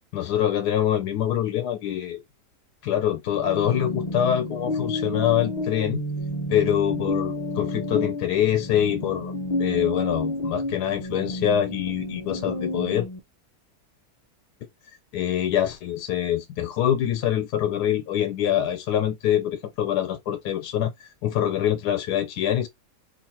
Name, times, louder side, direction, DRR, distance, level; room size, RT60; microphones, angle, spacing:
voice 1, 0.1-2.2 2.8-6.0 6.5-9.3 9.6-13.1 15.1-22.7, left 10 dB, 90° left, 1.2 m, -25 dB
sound 1, 3.3-13.2, left 2 dB, 45° left, 0.5 m, -30 dB
3.0 x 2.4 x 4.2 m
omnidirectional pair, 1.7 m